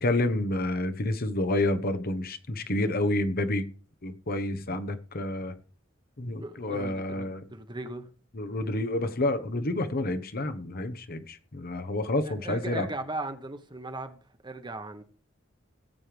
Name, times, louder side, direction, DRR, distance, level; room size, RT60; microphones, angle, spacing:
voice 1, 0.0-3.6 4.0-5.5 6.2-7.4 8.3-12.9, left 1 dB, 50° left, 1.1 m, -29 dB
voice 2, 6.4-8.1 12.2-14.2 14.4-15.0, right 2 dB, 25° right, 1.2 m, -38 dB
17.5 x 7.7 x 3.4 m
head